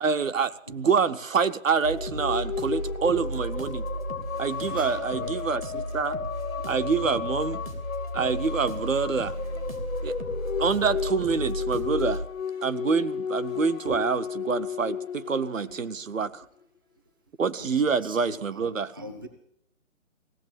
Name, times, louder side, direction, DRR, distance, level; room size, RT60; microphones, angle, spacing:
voice 1, 0.0-3.9 4.4-6.2 6.6-7.6 8.1-9.4 10.0-10.2 10.6-12.2 12.6-16.5 17.4-18.9, right 5 dB, 70° right, 11 dB, 0.9 m, -26 dB
sound 1, 1.8-16.3, left 7 dB, 75° left, 0.7 m, -34 dB
sound 2, 1.8-14.6, right 1 dB, 90° right, 3.2 m, -35 dB
voice 2, 4.5-5.4 7.0-7.1 13.8-14.0 17.6-19.3, right 2 dB, 15° right, 7 dB, 0.5 m, -41 dB
16.5 x 7.4 x 9.3 m, 0.71 s
figure-of-eight pair, 145°, 41 cm